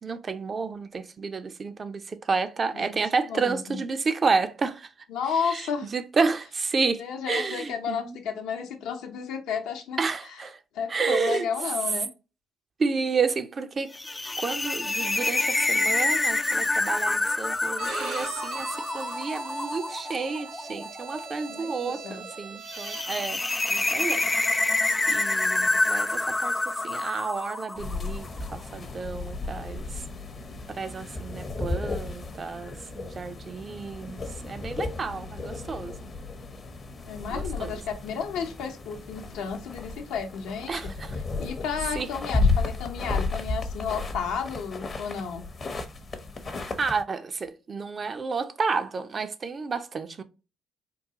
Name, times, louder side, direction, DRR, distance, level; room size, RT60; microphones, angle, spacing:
voice 1, 0.0-4.9 5.4-8.2 10.0-10.6 10.9-11.5 12.8-13.9 14.4-24.3 24.6-24.7 25.1-26.5 26.8-30.0 30.7-36.1 37.3-37.7 40.7-41.2 41.9-42.1 46.5-50.2, right 4 dB, 40° right, 0.5 m, -30 dB
voice 2, 3.3-3.8 5.1-5.9 7.0-10.0 10.7-12.1 21.5-22.2 37.0-40.9 41.4-45.5, left 6 dB, 75° left, 0.7 m, -32 dB
sound 1, 13.9-28.3, left 2 dB, 20° left, 0.3 m, -27 dB
Bowed string instrument, 17.7-23.3, right 5 dB, 65° right, 0.9 m, -40 dB
sound 2, 27.8-47.0, left 3 dB, 40° left, 0.7 m, -33 dB
3.8 x 2.3 x 2.8 m
hypercardioid pair, 60°, 0 cm